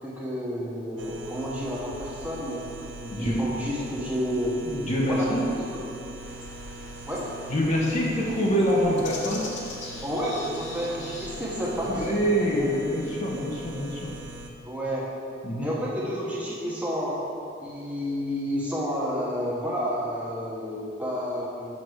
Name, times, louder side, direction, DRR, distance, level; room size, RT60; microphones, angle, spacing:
voice 1, 0.0-2.7 3.0-4.5 5.0-5.8 7.1-7.3 10.0-12.1 12.6-12.7 14.6-15.1 15.6-17.2 17.6-21.8, equal, 5° right, -6 dB, 1.1 m, -30 dB
sound 1, 1.0-14.5, right 2 dB, 70° right, 0.6 m, -42 dB
voice 2, 3.1-3.4 4.6-5.4 7.5-9.4 11.8-14.1 15.4-15.7, equal, 35° left, -3 dB, 0.9 m, -25 dB
sound 2, 6.2-12.2, left 3 dB, 65° left, 0.9 m, -43 dB
6.2 x 5.7 x 4.9 m, 2.6 s
head